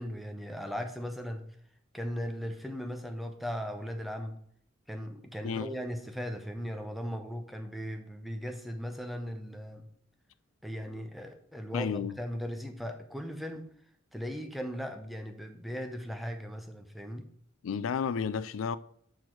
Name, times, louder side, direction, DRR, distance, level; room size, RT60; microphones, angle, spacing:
voice 1, 0.0-1.4 1.9-4.4 4.9-9.8 10.6-13.7 14.1-17.3, equal, ahead, 0.7 m, -38 dB
voice 2, 11.7-12.1 17.6-18.8, left 6 dB, 75° left, 0.4 m, -32 dB
7.7 x 4.4 x 4.6 m
head